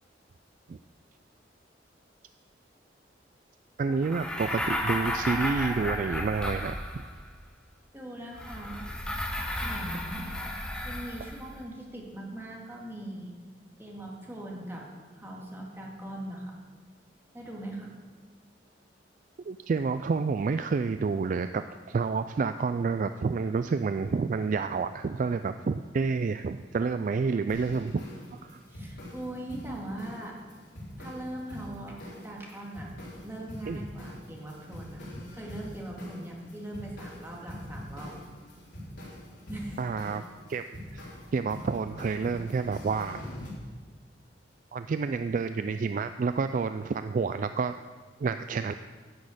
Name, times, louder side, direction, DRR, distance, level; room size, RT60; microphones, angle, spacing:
voice 1, 3.8-7.0 19.5-28.1 28.3-28.6 33.7-33.8 39.8-40.2 40.5-40.6 40.9-41.0 41.3-43.2 44.7-47.7 48.2-48.7, right 4 dB, 45° right, 10 dB, 0.3 m, -29 dB
sound 1, 4.0-7.3 8.3-11.5, left 1 dB, 5° left, 1.0 m, -33 dB
voice 2, 7.9-8.9 9.6-10.3 10.8-13.4 13.8-14.9 15.2-16.5 17.3-17.9 28.7-30.4 31.0-32.9 33.2-35.0 35.3-38.2 39.0-39.1 39.5-40.1, right 1 dB, 15° right, -2 dB, 2.1 m, -40 dB
sound 2, 27.5-43.5, left 1 dB, 85° left, 3.7 m, -44 dB
11.0 x 6.4 x 8.5 m, 1.5 s
head